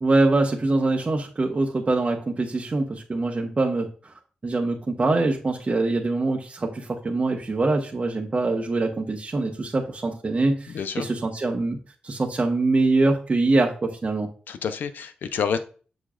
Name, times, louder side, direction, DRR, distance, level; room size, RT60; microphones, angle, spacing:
voice 1, 0.0-4.1 4.4-11.8 12.0-14.3, right 2 dB, 40° right, 1 dB, 1.2 m, -24 dB
voice 2, 10.7-11.1 14.5-15.6, left 7 dB, 75° left, 9 dB, 0.7 m, -28 dB
7.1 x 6.4 x 2.5 m, 0.39 s
supercardioid pair, 45°, 3 cm